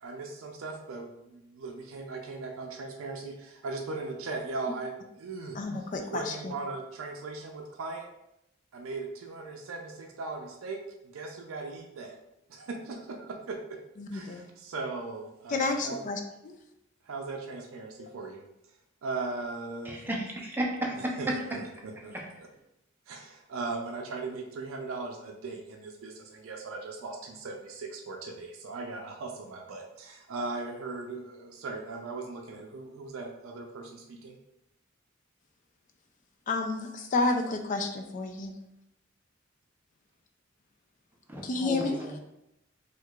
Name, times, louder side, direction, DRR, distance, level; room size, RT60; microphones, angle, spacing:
voice 1, 0.0-8.1 8.7-12.2 12.5-13.8 14.1-16.1 17.0-18.4 19.0-20.1 21.2-22.2 23.1-34.4, right 3 dB, 85° right, 1 dB, 0.4 m, -38 dB
voice 2, 5.5-6.5 14.0-14.5 15.5-16.5 18.0-18.1 36.5-38.5 41.4-42.0, left 3 dB, 40° left, 6 dB, 0.4 m, -30 dB
voice 3, 19.8-21.4 22.1-22.2 41.3-42.2, right 1 dB, 10° right, -2 dB, 0.5 m, -33 dB
4.5 x 2.4 x 2.3 m, 0.84 s
head